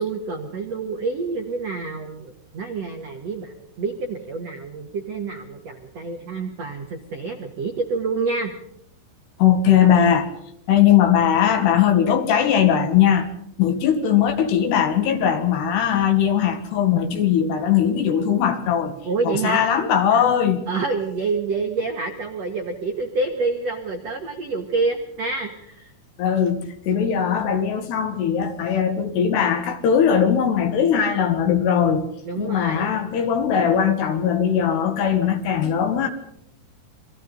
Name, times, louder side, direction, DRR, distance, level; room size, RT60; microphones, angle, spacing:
voice 1, 0.0-8.5 19.0-19.6 20.1-20.2 20.7-25.9 32.2-32.9, right 4 dB, 80° right, 1.4 m, -27 dB
voice 2, 9.4-10.3 10.7-13.3 13.6-18.9 19.2-20.7 26.2-32.0 32.4-36.1, left 8 dB, 65° left, 3.2 m, -19 dB
29.0 x 23.0 x 4.1 m
omnidirectional pair, 5.8 m